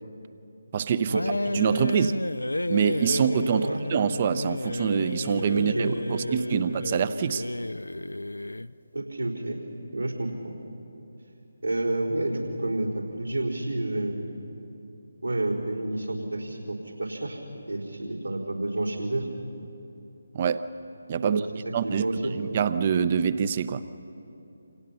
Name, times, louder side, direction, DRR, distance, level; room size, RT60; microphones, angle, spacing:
voice 1, 0.7-1.2 1.5-2.2 2.7-7.4 20.3-20.7 21.1-21.4 21.7-22.0 22.3-23.8, right 7 dB, 30° right, 14 dB, 0.7 m, -25 dB
sound 1, 1.1-8.7, left 2 dB, 75° left, 0.5 m, -31 dB
voice 2, 3.5-3.8 5.5-6.6 8.9-9.6 9.9-10.5 11.6-14.3 15.2-17.4 17.7-19.3 21.2-21.5 21.8-22.3, right 2 dB, 80° right, -4 dB, 4.2 m, -30 dB
28.5 x 26.5 x 5.8 m, 2.9 s
figure-of-eight pair, 150°, 0 cm